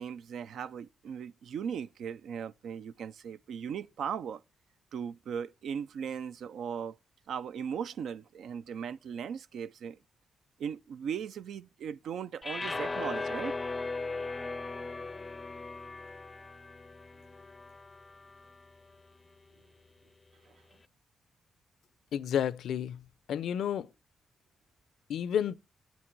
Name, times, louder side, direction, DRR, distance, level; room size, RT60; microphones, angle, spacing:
voice 1, 0.0-4.4 4.9-7.0 7.3-10.0 10.6-13.5, right 7 dB, 80° right, 0.4 m, -38 dB
sound 1, 12.4-18.7, left 3 dB, 25° left, 0.5 m, -38 dB
voice 2, 22.1-23.0 23.3-23.9 25.1-25.5, left 9 dB, 85° left, 0.5 m, -31 dB
8.5 x 6.2 x 4.5 m
cardioid pair, 90°, 0 cm